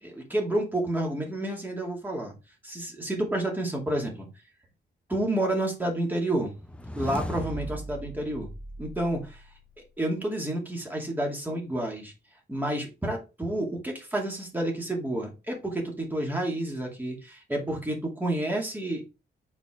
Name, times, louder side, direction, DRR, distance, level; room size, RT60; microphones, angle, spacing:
voice 1, 0.0-2.3 2.6-4.3 5.1-6.5 6.9-8.5 8.8-9.4 9.8-12.1 12.5-19.0, right 1 dB, 10° right, 0 dB, 2.4 m, -30 dB
sound 1, 6.5-9.8, right 1 dB, 5° left, 0.7 m, -38 dB
5.7 x 4.7 x 3.7 m, 0.28 s
cardioid pair, 125°, 18 cm